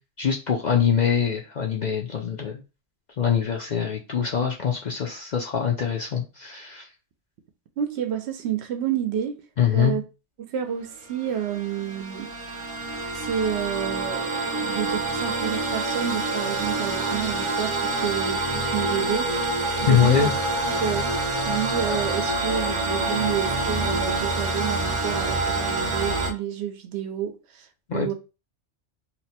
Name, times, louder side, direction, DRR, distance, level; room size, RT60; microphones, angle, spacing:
voice 1, 0.2-2.6 3.2-6.9 9.6-10.0 19.9-20.3 27.9-28.1, left 8 dB, 55° left, 0.5 m, -23 dB
voice 2, 7.8-9.4 9.7-10.0 10.4-12.3 13.1-20.3 20.6-28.1, right 9 dB, 70° right, 0.8 m, -30 dB
sound 1, 11.1-26.3, right 2 dB, 40° right, 0.4 m, -27 dB
2.8 x 2.1 x 4.1 m
omnidirectional pair, 1.2 m